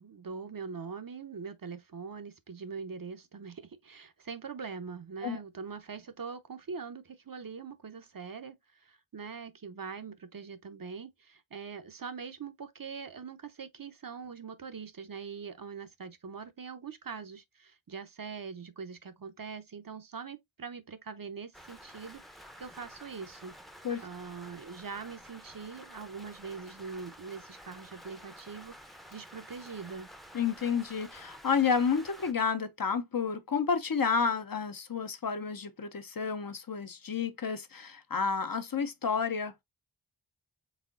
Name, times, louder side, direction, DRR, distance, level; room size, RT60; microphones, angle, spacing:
voice 1, 0.0-23.6 24.0-30.1, right 5 dB, 45° right, 0.6 m, -43 dB
Rain, 21.5-32.3, equal, ahead, 0.6 m, -51 dB
voice 2, 30.3-39.6, left 6 dB, 45° left, 0.6 m, -30 dB
4.1 x 3.6 x 2.4 m
wide cardioid pair, 50°, 48 cm